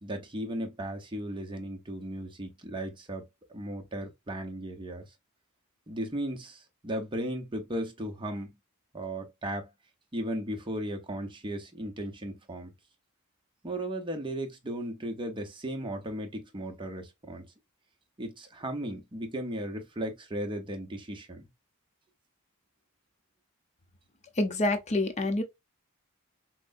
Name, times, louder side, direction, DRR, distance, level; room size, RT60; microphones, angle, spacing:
voice 1, 0.0-5.0 5.9-8.5 8.9-9.7 10.1-12.7 13.6-17.5 18.2-21.5, right 1 dB, 20° right, 0.8 m, -36 dB
voice 2, 24.4-25.4, left 2 dB, 30° left, 0.7 m, -27 dB
5.9 x 2.1 x 2.5 m
head